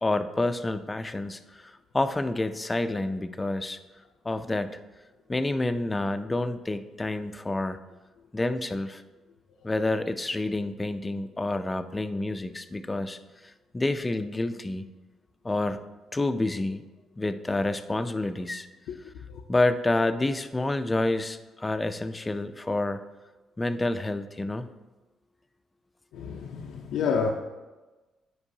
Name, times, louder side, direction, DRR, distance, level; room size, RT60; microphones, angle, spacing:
voice 1, 0.0-3.8 4.2-4.7 5.3-7.8 8.3-9.0 9.6-13.2 13.7-14.8 15.4-15.8 16.1-16.8 17.2-18.7 19.5-23.0 23.6-24.7, left 2 dB, 20° left, 0.4 m, -28 dB
voice 2, 26.1-27.3, left 6 dB, 85° left, 0.5 m, -29 dB
9.8 x 4.6 x 2.7 m
cardioid pair, 90°, 0 cm